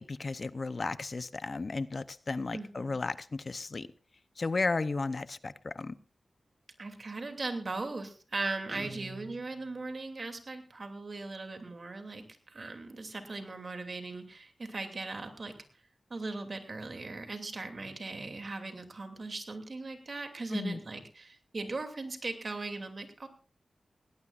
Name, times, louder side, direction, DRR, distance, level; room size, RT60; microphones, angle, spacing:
voice 1, 0.0-3.9 4.4-5.9 20.5-20.8, left 3 dB, 55° left, 0.7 m, -34 dB
voice 2, 2.5-3.0 6.8-15.5 16.1-23.3, right 3 dB, 55° right, 2.7 m, -39 dB
Guitar, 8.7-10.0, right 3 dB, 35° right, 1.2 m, -46 dB
18.0 x 18.0 x 2.5 m
cardioid pair, 45°, 0 cm